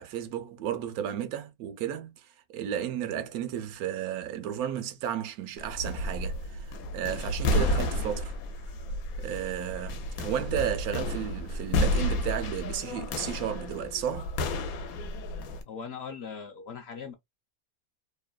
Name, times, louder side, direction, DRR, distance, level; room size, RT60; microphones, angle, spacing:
voice 1, 0.0-2.3 2.5-6.7 6.9-8.3 9.2-14.3, right 10 dB, 90° right, 1.1 m, -33 dB
sound 1, 5.6-15.6, left 1 dB, 85° left, 1.1 m, -31 dB
voice 2, 15.7-17.1, left 6 dB, 65° left, 0.7 m, -40 dB
3.0 x 2.2 x 2.3 m
omnidirectional pair, 1.5 m